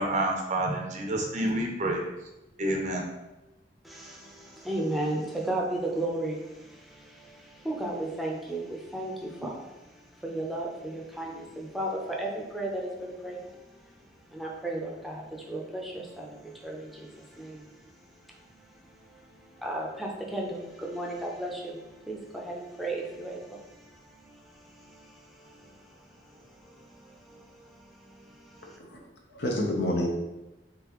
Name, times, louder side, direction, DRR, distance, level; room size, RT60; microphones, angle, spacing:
voice 1, 0.0-2.0 2.6-3.0, right 1 dB, 45° right, 1 dB, 0.5 m, -28 dB
voice 2, 3.8-14.0 14.3-28.8, right 1 dB, ahead, -2 dB, 0.6 m, -36 dB
voice 3, 28.8-30.1, left 1 dB, 70° left, -1 dB, 0.7 m, -29 dB
3.8 x 3.7 x 3.0 m, 0.99 s
head